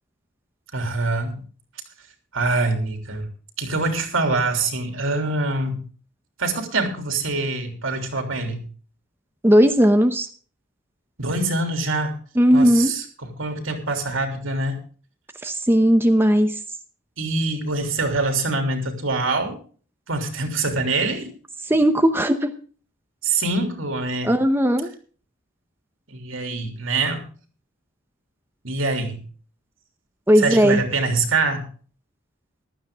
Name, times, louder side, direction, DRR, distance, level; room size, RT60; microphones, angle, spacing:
voice 1, 0.7-1.4 2.3-3.3 3.6-5.8 6.4-8.6 11.2-12.2 12.5-14.8 17.2-19.6 20.1-21.3 23.2-24.4 26.1-27.2 28.6-29.2 30.4-31.7, right 3 dB, 75° right, 5 dB, 3.2 m, -24 dB
voice 2, 9.4-10.3 12.4-12.9 15.4-16.5 21.7-22.5 24.2-24.9 30.3-30.8, equal, 10° right, 7 dB, 0.8 m, -17 dB
15.5 x 12.5 x 3.6 m, 0.41 s
head